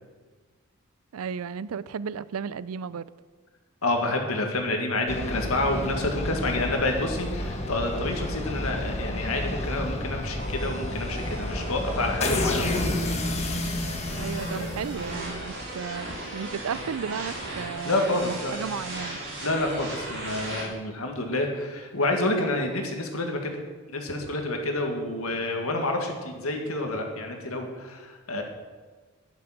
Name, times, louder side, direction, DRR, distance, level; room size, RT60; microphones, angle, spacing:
voice 1, 1.1-3.0 14.1-19.2, right 6 dB, 90° right, 18 dB, 0.4 m, -34 dB
voice 2, 3.8-13.1 14.5-14.8 17.8-18.8 19.4-23.6 23.9-28.4, left 2 dB, 85° left, 3 dB, 2.0 m, -28 dB
sound 1, 5.1-15.3, left 1 dB, 30° left, 1.3 m, -30 dB
sound 2, 10.4-20.6, right 1 dB, 60° right, 4.2 m, -37 dB
10.5 x 9.9 x 6.0 m, 1.4 s
head